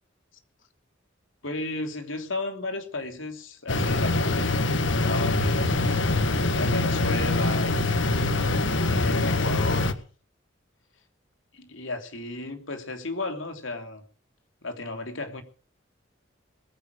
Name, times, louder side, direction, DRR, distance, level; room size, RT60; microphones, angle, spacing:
voice 1, 1.4-4.5 5.0-5.8 6.5-7.7 8.8-10.0 11.5-14.0 14.6-15.4, left 2 dB, 90° left, 6 dB, 3.3 m, -33 dB
sound 1, 3.7-9.9, left 2 dB, 70° left, 1.6 m, -24 dB
21.0 x 9.9 x 6.5 m, 0.39 s
head